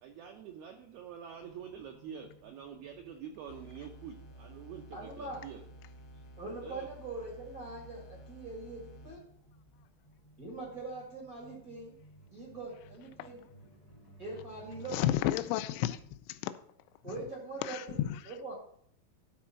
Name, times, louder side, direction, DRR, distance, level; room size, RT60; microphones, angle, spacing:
voice 1, 0.0-5.6 6.6-6.9, right 8 dB, 85° right, 3 dB, 2.2 m, -46 dB
sound 1, 1.4-15.0, right 1 dB, 40° left, 0.6 m, -59 dB
sound 2, 3.5-9.5, right 1 dB, 65° left, 1.6 m, -53 dB
voice 2, 4.9-5.5 6.4-9.2 10.4-11.9 12.3-13.4 14.2-15.0 17.0-18.0 18.2-18.5, right 3 dB, 65° right, -2 dB, 0.8 m, -42 dB
voice 3, 14.9-16.0 16.3-16.5 17.6-18.2, left 13 dB, 85° left, 11 dB, 2.8 m, -31 dB
12.5 x 4.3 x 5.9 m, 0.64 s
omnidirectional pair, 5.4 m